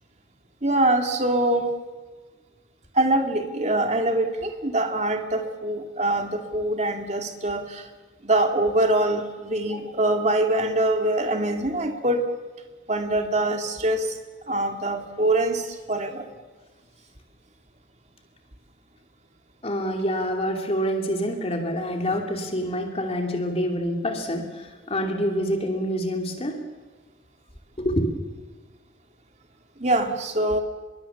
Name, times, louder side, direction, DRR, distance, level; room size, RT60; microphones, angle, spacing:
voice 1, 0.6-1.7 2.9-7.8 8.2-12.2 12.9-14.1 14.5-16.3 29.8-30.6, right 1 dB, 40° right, 4 dB, 2.3 m, -24 dB
voice 2, 19.6-26.6 27.8-28.1, equal, 35° left, 3 dB, 2.7 m, -26 dB
26.0 x 22.5 x 7.1 m, 1.3 s
head